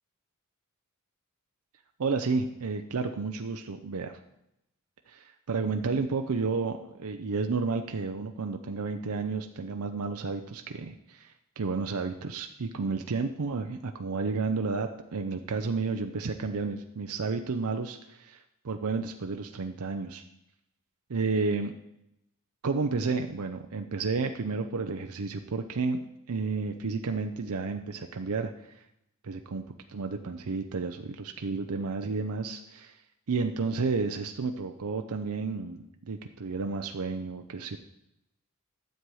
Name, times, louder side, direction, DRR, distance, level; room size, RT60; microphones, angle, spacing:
voice 1, 2.0-4.2 5.1-20.2 21.1-21.7 22.6-26.0 26.3-28.8 29.2-33.0 33.3-37.8, right 4 dB, 75° right, 6 dB, 0.6 m, -31 dB
12.0 x 7.6 x 4.8 m, 0.85 s
head